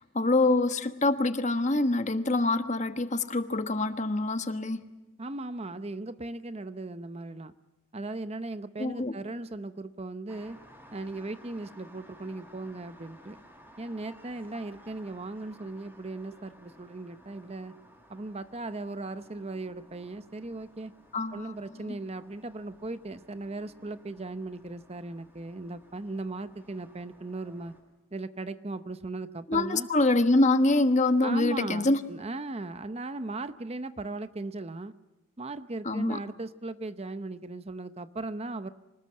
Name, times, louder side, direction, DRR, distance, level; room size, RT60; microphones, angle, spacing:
voice 1, 0.0-4.9 8.8-9.1 21.1-21.9 29.5-32.0 35.8-36.2, left 2 dB, 35° left, 9 dB, 1.3 m, -25 dB
voice 2, 5.2-7.5 7.9-10.6 10.9-13.4 13.8-17.7 18.1-20.9 21.3-27.7 28.1-29.9 31.2-34.9 35.4-38.7, right 2 dB, 30° right, 12 dB, 0.7 m, -37 dB
sound 1, 10.3-27.8, equal, 10° right, 6.2 m, -56 dB
25.5 x 20.0 x 8.7 m, 1.1 s
head